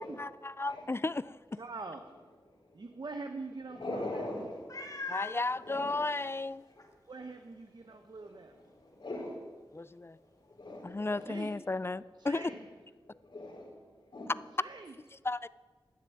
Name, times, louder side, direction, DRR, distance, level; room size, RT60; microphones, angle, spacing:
voice 1, 0.2-1.4 5.1-6.6 9.7-10.2 10.8-12.5 15.1-15.5, left 2 dB, 30° left, 18 dB, 0.3 m, -34 dB
voice 2, 1.6-2.0 2.7-4.2 7.1-8.5 11.2-11.5 12.2-12.6 14.6-14.9, right 3 dB, 60° right, 6 dB, 0.9 m, -43 dB
voice 3, 3.7-4.9 5.6-6.0 8.2-8.4 8.7-9.5 10.6-11.3 13.1-13.7 14.1-14.3, left 2 dB, 70° left, -3 dB, 4.4 m, -41 dB
Meow, 4.7-5.4 6.2-6.3 6.8-6.9 10.8-10.9, left 4 dB, 45° left, 2.2 m, -40 dB
12.5 x 6.9 x 9.4 m, 1.3 s
wide cardioid pair, 65°, 8 cm